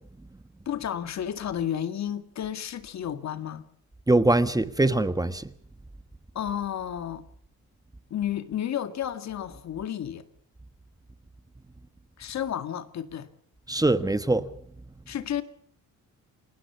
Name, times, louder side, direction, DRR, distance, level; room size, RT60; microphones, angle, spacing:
voice 1, 0.7-3.7 6.3-7.2 8.1-10.2 12.2-13.3 15.1-15.4, left 10 dB, 65° left, 2.1 m, -32 dB
voice 2, 4.1-5.5 13.7-14.5, right 2 dB, 10° right, 1.3 m, -22 dB
29.5 x 19.5 x 5.9 m
cardioid pair, 90°, 30 cm